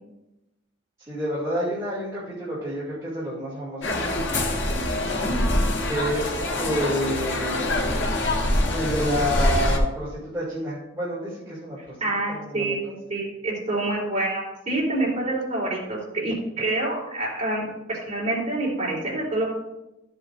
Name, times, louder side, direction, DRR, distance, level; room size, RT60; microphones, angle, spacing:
voice 1, 1.0-4.0 5.8-8.0 8.7-12.0 12.3-12.9, equal, 15° right, -10 dB, 2.6 m, -29 dB
sound 1, 3.8-9.8, left 1 dB, 65° left, 1.4 m, -24 dB
voice 2, 12.0-19.4, right 2 dB, 35° right, -5 dB, 3.8 m, -27 dB
14.0 x 8.0 x 2.6 m, 0.95 s
head